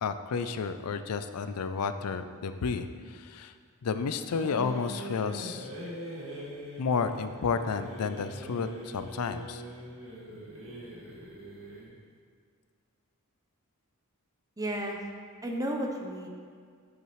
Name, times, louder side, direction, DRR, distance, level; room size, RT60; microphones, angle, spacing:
voice 1, 0.0-3.5 3.8-5.7 6.8-9.6, left 5 dB, 80° left, 10 dB, 0.4 m, -31 dB
sound 1, 4.3-11.9, equal, 65° right, 2.0 m, -42 dB
voice 2, 14.6-15.0 15.4-16.3, right 1 dB, 15° right, 1 dB, 0.7 m, -32 dB
8.0 x 7.2 x 3.2 m, 2.1 s
head